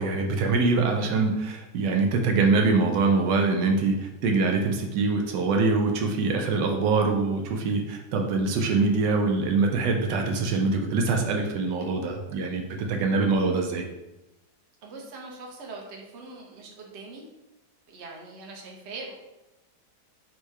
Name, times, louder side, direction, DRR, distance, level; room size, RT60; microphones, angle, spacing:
voice 1, 0.0-13.9, right 3 dB, 80° right, 2 dB, 1.3 m, -24 dB
voice 2, 14.8-17.2 17.9-19.1, right 3 dB, 50° right, 0 dB, 0.9 m, -42 dB
4.5 x 2.2 x 4.7 m, 0.98 s
omnidirectional pair, 1.9 m